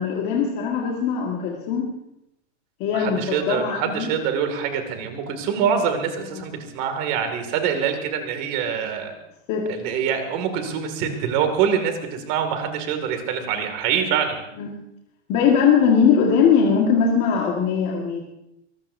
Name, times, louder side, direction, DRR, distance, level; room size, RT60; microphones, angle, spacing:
voice 1, 0.0-1.9 2.8-4.1 6.3-6.4 9.5-9.7 14.6-14.7 15.3-18.2, left 6 dB, 30° left, -2 dB, 1.8 m, -20 dB
voice 2, 2.9-9.1 9.7-14.4, right 7 dB, 30° right, 6 dB, 2.4 m, -25 dB
23.0 x 19.5 x 2.7 m, 0.81 s
supercardioid pair, 175°, 36 cm